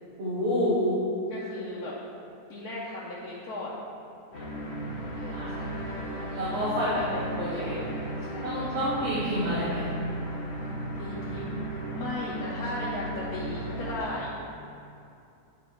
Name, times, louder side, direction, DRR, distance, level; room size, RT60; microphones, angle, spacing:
voice 1, 0.2-1.0 5.3-5.5 6.3-6.9 7.4-7.8 8.4-9.9, equal, 45° right, -10 dB, 1.5 m, -28 dB
voice 2, 1.3-2.0 2.5-3.8 5.2-5.8 6.8-7.1 7.3-8.6 10.9-14.3, left 2 dB, 75° left, -7 dB, 1.5 m, -37 dB
sound 1, 4.3-14.0, right 1 dB, 45° left, 1.2 m, -35 dB
10.5 x 4.1 x 4.5 m, 2.6 s
omnidirectional pair, 1.7 m